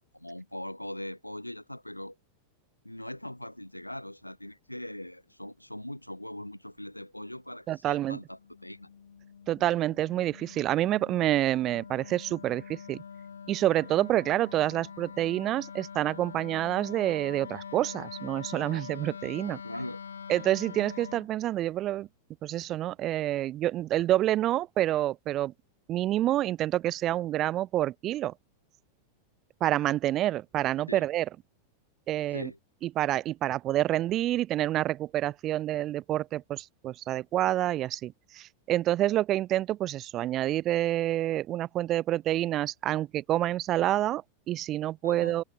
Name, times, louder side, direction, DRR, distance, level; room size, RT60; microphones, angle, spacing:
voice 1, 0.0-2.2 2.8-8.9 19.6-20.0 30.9-31.0 32.3-32.6 45.0-45.4, left 1 dB, 90° left, 3.9 m, -41 dB
voice 2, 7.7-8.2 9.5-13.0 13.5-19.6 20.3-22.1 22.4-25.5 25.9-28.3 29.6-31.3 32.1-32.5 32.8-45.4, right 13 dB, 35° right, 0.4 m, -28 dB
Wind instrument woodwind instrument, 8.4-21.3, left 6 dB, 70° left, 2.5 m, -44 dB
figure-of-eight pair, 90°, 0 cm